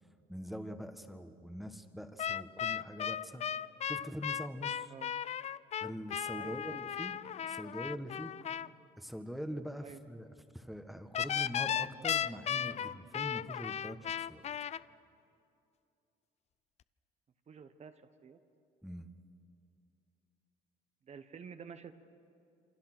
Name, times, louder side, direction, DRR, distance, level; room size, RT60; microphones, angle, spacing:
voice 1, 0.3-3.4 3.8-4.9 5.8-7.1 7.5-8.3 9.0-10.3 10.5-14.4 18.8-19.1, equal, ahead, 7 dB, 1.5 m, -43 dB
sound 1, 2.2-8.7 11.1-14.8, left 9 dB, 40° left, 0.5 m, -36 dB
voice 2, 6.3-6.8 9.8-10.0 17.5-17.9 18.2-18.4 21.1-21.9, right 6 dB, 40° right, 9 dB, 1.2 m, -49 dB
28.0 x 26.0 x 6.1 m, 2.6 s
cardioid pair, 110°, 17 cm